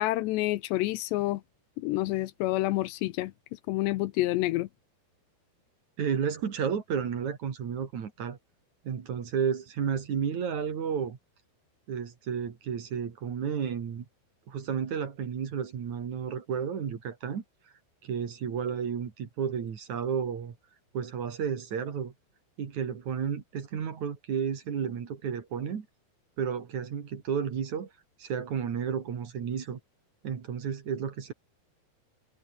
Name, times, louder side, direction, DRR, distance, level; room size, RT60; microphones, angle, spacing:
voice 1, 0.0-1.4 1.8-3.3 3.7-4.7, left 17 dB, 80° left, 2.7 m, -28 dB
voice 2, 6.0-8.4 8.8-11.2 11.9-14.0 14.5-17.4 18.0-20.6 20.9-22.1 22.6-25.9 26.4-27.9 28.2-29.8 30.2-31.3, right 7 dB, 45° right, 3.2 m, -32 dB
omnidirectional pair, 5.5 m